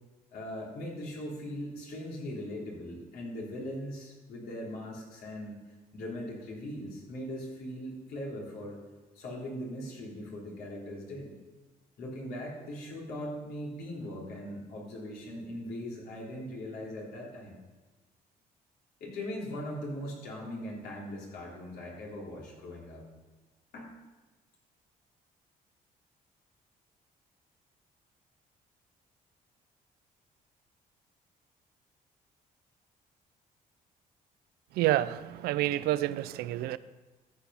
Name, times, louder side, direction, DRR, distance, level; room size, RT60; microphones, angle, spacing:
voice 1, 0.3-5.6 5.9-8.8 9.1-11.3 12.0-17.5 19.0-23.0 23.7-24.0, left 1 dB, 75° left, 3.6 m, -40 dB
voice 2, 34.7-36.8, right 14 dB, 90° right, 0.4 m, -28 dB
13.5 x 6.1 x 5.7 m
cardioid pair, 90°, 16 cm